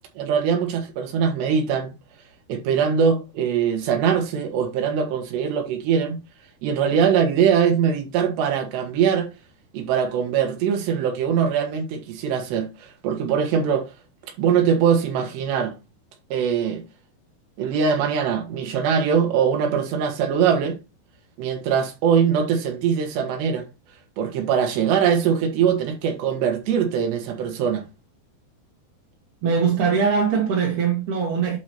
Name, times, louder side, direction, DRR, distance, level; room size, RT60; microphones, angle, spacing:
voice 1, 0.2-1.9 2.5-6.2 6.6-9.3 9.7-13.9 14.4-15.7 16.3-16.8 17.6-20.8 21.4-23.6 24.2-27.8, right 7 dB, 80° right, 3.7 m, -22 dB
voice 2, 29.4-31.6, right 6 dB, 60° right, 2.5 m, -21 dB
11.5 x 4.9 x 2.9 m
omnidirectional pair, 4.9 m